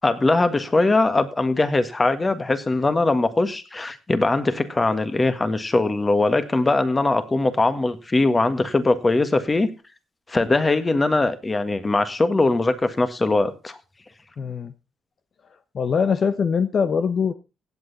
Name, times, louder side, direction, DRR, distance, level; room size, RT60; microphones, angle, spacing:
voice 1, 0.0-9.7 10.3-13.8, left 2 dB, 25° left, 1.8 m, -21 dB
voice 2, 14.4-14.7 15.5-17.3, left 6 dB, 50° left, 0.9 m, -23 dB
16.5 x 8.2 x 4.2 m
cardioid pair, 90°, 0 cm